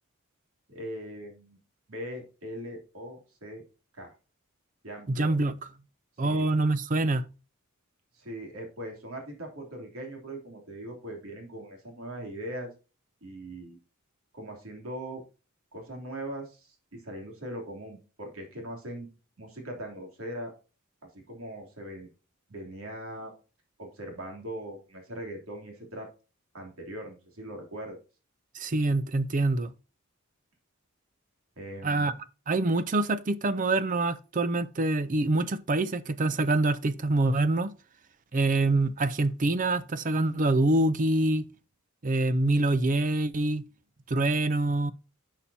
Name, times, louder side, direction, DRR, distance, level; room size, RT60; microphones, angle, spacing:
voice 1, 0.7-1.6 1.9-3.6 3.9-4.1 4.8-5.3 6.2-6.5 8.1-12.7 13.2-13.8 14.3-15.2 15.7-19.1 19.4-20.5 21.3-22.1 22.5-23.3 23.8-26.1 26.5-28.0 31.6-32.1, right 1 dB, 75° right, 3.1 m, -40 dB
voice 2, 5.1-5.5 6.2-7.2 28.5-29.7 31.8-32.1 32.5-37.7 38.3-41.4 42.0-43.6 44.1-44.9, right 2 dB, 35° right, 0.5 m, -25 dB
11.0 x 5.8 x 2.8 m
head